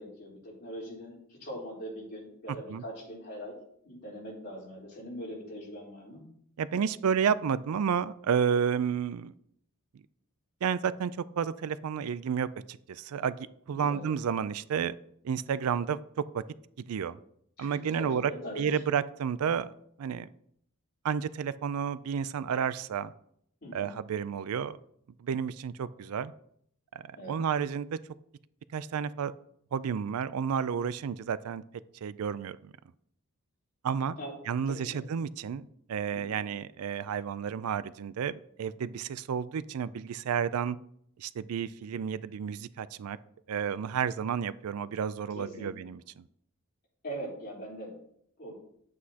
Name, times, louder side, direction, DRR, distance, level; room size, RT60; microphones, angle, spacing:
voice 1, 0.0-3.5 3.8-6.3 13.8-14.0 17.6-18.8 23.6-23.9 27.2-27.4 34.2-34.3 34.7-35.0 36.1-36.4 45.3-45.7 47.0-47.9 48.4-48.6, equal, 45° left, -5 dB, 3.7 m, -41 dB
voice 2, 2.5-2.8 6.6-9.3 10.6-13.4 13.7-15.0 15.2-16.4 16.9-17.2 17.6-18.3 18.6-19.7 20.0-20.3 21.0-23.1 23.7-24.8 25.2-26.3 26.9-28.0 28.7-29.3 29.7-31.6 32.0-32.7 33.8-34.2 34.5-38.3 38.6-40.8 41.2-43.2 43.5-46.2, right 7 dB, 85° right, 17 dB, 0.4 m, -31 dB
9.6 x 8.2 x 2.8 m, 0.69 s
head